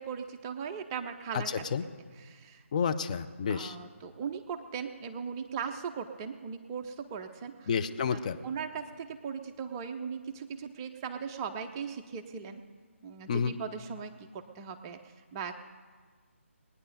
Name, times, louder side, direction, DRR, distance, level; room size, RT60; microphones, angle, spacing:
voice 1, 0.0-1.7 2.1-2.7 3.5-7.8 8.1-12.6 13.0-15.5, right 6 dB, 20° right, 7 dB, 0.6 m, -39 dB
voice 2, 2.7-3.8 7.7-8.4 13.3-13.5, left 6 dB, 30° left, 9 dB, 0.6 m, -30 dB
20.0 x 9.8 x 5.2 m, 1.6 s
figure-of-eight pair, 150°, 7 cm